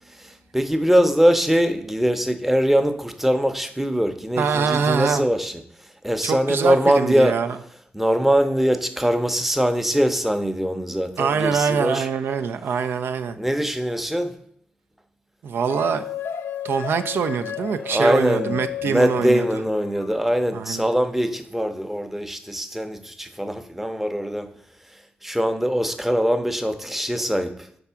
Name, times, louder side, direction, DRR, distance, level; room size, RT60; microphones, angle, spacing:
voice 1, 0.1-5.5 6.0-7.4 7.9-12.1 13.4-14.3 17.8-24.5 25.2-27.5, equal, 5° right, 7 dB, 0.6 m, -22 dB
voice 2, 4.4-5.2 6.2-7.6 11.2-13.4 15.4-16.0 16.6-19.6 20.5-20.9, right 6 dB, 85° right, 8 dB, 0.4 m, -24 dB
sound 1, 15.6-20.1, left 9 dB, 85° left, 0.4 m, -33 dB
4.9 x 3.5 x 5.6 m, 0.66 s
cardioid pair, 65°, 4 cm